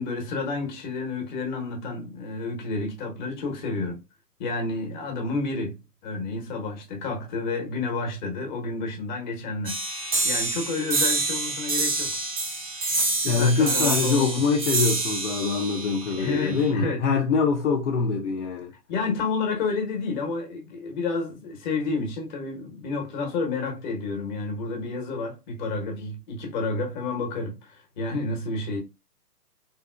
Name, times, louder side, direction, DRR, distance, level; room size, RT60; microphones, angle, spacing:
voice 1, 0.0-4.0 4.4-12.2 12.9-14.5 16.2-17.1 18.9-28.8, left 3 dB, 30° left, 1.1 m, -30 dB
sound 1, 9.7-16.7, right 3 dB, 20° right, 0.6 m, -27 dB
voice 2, 13.2-18.7, left 5 dB, 50° left, 0.6 m, -24 dB
3.5 x 2.8 x 2.3 m
hypercardioid pair, 145°, 48 cm